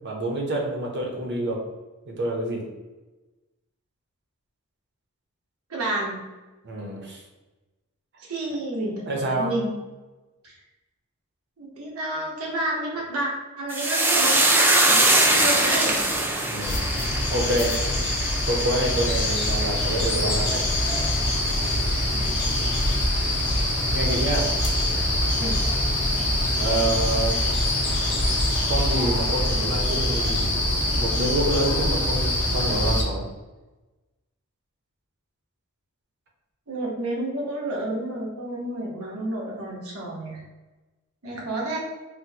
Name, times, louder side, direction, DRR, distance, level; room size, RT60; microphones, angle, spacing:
voice 1, 0.0-1.6 2.1-2.6 6.6-7.2 9.1-9.5 16.4-16.8 17.3-17.8 18.4-20.6 23.9-24.5 26.5-27.4 28.7-30.6 31.0-33.3, right 1 dB, 50° right, 0 dB, 0.7 m, -27 dB
voice 2, 5.7-6.2 8.2-9.8 10.4-10.5 11.6-13.3 13.6-16.0 22.1-22.2 25.4-25.7 36.7-40.4 41.2-41.8, right 1 dB, 85° right, -2 dB, 0.9 m, -30 dB
sound 1, 13.7-22.3 22.6-23.3 23.6-23.8, right 1 dB, 10° right, 0.3 m, -23 dB
sound 2, 16.6-33.0, left 1 dB, 55° left, 0.7 m, -24 dB
4.2 x 2.1 x 2.7 m, 1.1 s
head